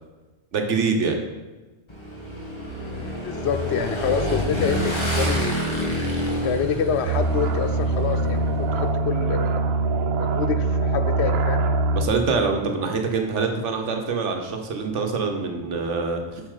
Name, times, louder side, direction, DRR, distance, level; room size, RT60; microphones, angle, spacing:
voice 1, 0.5-1.2 11.9-16.4, right 4 dB, 85° right, 4 dB, 1.3 m, -25 dB
Motorcycle / Engine, 1.9-8.9, equal, 25° left, 1.5 m, -28 dB
voice 2, 2.8-5.6 6.4-9.6 10.2-11.6, left 7 dB, 70° left, 9 dB, 0.8 m, -27 dB
sound 1, 7.1-12.1, right 3 dB, 65° right, 0.8 m, -23 dB
7.4 x 6.0 x 4.8 m, 1.2 s
omnidirectional pair, 1.2 m